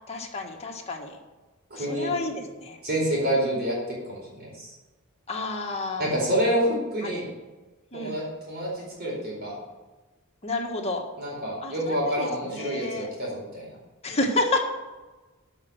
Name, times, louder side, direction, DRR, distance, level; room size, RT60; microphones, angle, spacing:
voice 1, 0.1-1.2 1.7-2.8 5.3-6.1 7.0-7.2 7.9-8.1 10.4-11.1 11.6-13.1 14.0-14.6, left 2 dB, 30° left, 1 dB, 1.7 m, -30 dB
voice 2, 1.7-2.1 2.8-3.7 4.0-4.7 6.0-7.3 7.9-9.6 11.2-13.7, equal, 50° right, -4 dB, 4.5 m, -28 dB
12.5 x 5.7 x 6.5 m, 1.2 s
head